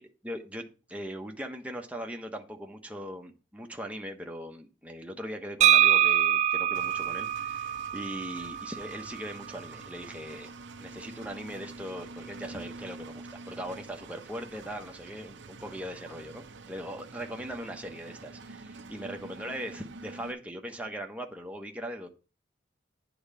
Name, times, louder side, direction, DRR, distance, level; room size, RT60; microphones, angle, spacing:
voice 1, 0.2-10.5 10.8-22.1, equal, 10° right, 3 dB, 1.1 m, -40 dB
sound 1, 5.6-9.4, right 10 dB, 35° right, 0.4 m, -25 dB
Engine, 6.7-20.3, right 3 dB, 75° right, 0.8 m, -47 dB
9.6 x 3.9 x 6.9 m, 0.33 s
head